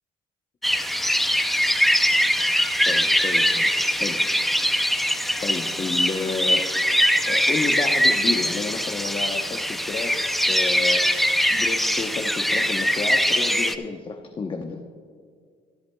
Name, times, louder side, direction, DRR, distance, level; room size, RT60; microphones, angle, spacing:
sound 1, 0.6-13.8, equal, ahead, 0.5 m, -22 dB
voice 1, 2.9-3.7 4.0-4.2 5.4-6.7 7.3-11.0 11.5-14.8, left 4 dB, 35° left, 2 dB, 0.9 m, -31 dB
24.0 x 8.5 x 2.3 m, 2.1 s
cardioid pair, 90°, 15 cm